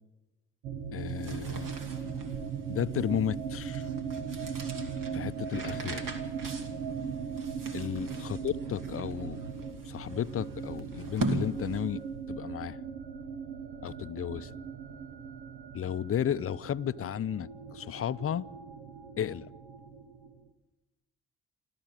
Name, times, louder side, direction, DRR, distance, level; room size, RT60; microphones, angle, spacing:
sound 1, 0.6-20.5, right 6 dB, 75° right, 1.2 m, -39 dB
voice 1, 0.9-1.8 2.7-3.9 5.1-6.0 7.7-9.4 9.8-12.0 12.3-12.8 13.8-14.5 15.7-18.5 19.2-19.5, left 9 dB, 35° left, 0.6 m, -33 dB
sound 2, 0.9-12.1, right 2 dB, 55° right, 2.7 m, -40 dB
28.5 x 13.0 x 8.8 m
hypercardioid pair, 40°, 37 cm